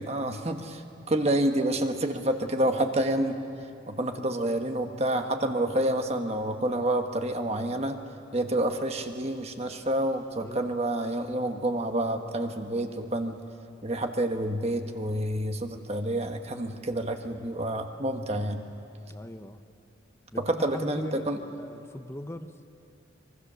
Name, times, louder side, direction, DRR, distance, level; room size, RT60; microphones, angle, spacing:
voice 1, 0.0-3.4 3.9-8.0 8.3-13.4 13.8-18.6 20.4-21.4, right 1 dB, 30° right, 5 dB, 1.2 m, -28 dB
voice 2, 2.6-2.9 10.4-10.7 19.1-19.6 20.3-22.5, left 1 dB, 15° left, 9 dB, 0.7 m, -40 dB
24.5 x 23.0 x 6.9 m, 2.9 s
head